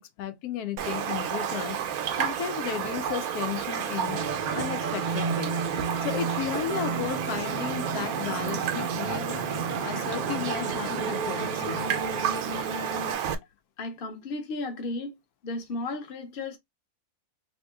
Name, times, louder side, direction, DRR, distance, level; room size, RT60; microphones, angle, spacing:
voice 1, 0.0-1.8 2.2-4.2 4.5-5.6 6.0-9.4 9.8-11.9, left 9 dB, 85° left, 1.1 m, -34 dB
Raindrop, 0.8-13.3, right 8 dB, 75° right, 1.1 m, -31 dB
sound 1, 4.1-13.1, right 4 dB, 45° right, 0.6 m, -33 dB
voice 2, 13.8-15.2 15.4-16.6, left 2 dB, 45° left, 0.9 m, -34 dB
2.9 x 2.8 x 3.4 m
omnidirectional pair, 1.6 m